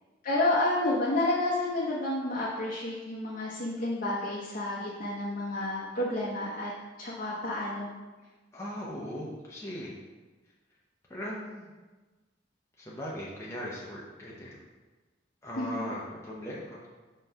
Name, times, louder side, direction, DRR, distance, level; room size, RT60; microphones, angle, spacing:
voice 1, 0.2-6.7 7.0-7.9 15.6-15.8, left 1 dB, 50° left, -6 dB, 0.9 m, -30 dB
voice 2, 8.5-10.0 11.1-11.7 12.8-14.6 15.4-16.9, equal, 15° left, -6 dB, 0.8 m, -39 dB
5.7 x 3.1 x 5.4 m, 1.2 s
head